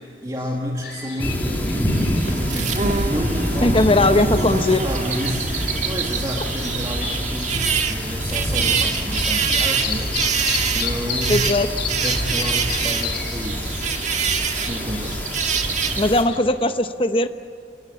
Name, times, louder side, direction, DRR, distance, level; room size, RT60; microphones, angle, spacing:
voice 1, 0.0-10.2 10.6-11.7 12.0-14.1 14.6-15.2, equal, 20° right, 0 dB, 2.1 m, -31 dB
sound 1, 0.8-16.4, left 6 dB, 65° left, 3.8 m, -34 dB
sound 2, 1.2-16.2, equal, 10° left, 2.7 m, -27 dB
sound 3, 1.9-16.1, right 6 dB, 40° right, 1.7 m, -26 dB
voice 2, 3.6-4.8 11.3-11.7 16.0-17.3, left 2 dB, 30° left, 9 dB, 1.0 m, -19 dB
28.5 x 20.0 x 8.4 m, 2.5 s
head